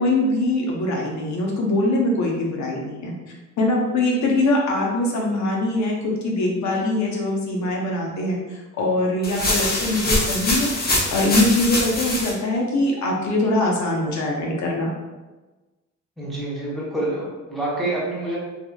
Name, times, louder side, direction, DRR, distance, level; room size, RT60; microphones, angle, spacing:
voice 1, 0.0-3.1 3.6-14.9, left 1 dB, 65° left, -1 dB, 0.7 m, -22 dB
sound 1, 9.2-12.3, left 1 dB, 30° left, 0.8 m, -23 dB
voice 2, 16.2-18.4, right 2 dB, ahead, -7 dB, 0.9 m, -27 dB
2.8 x 2.4 x 2.3 m, 1.2 s
cardioid pair, 90°, 30 cm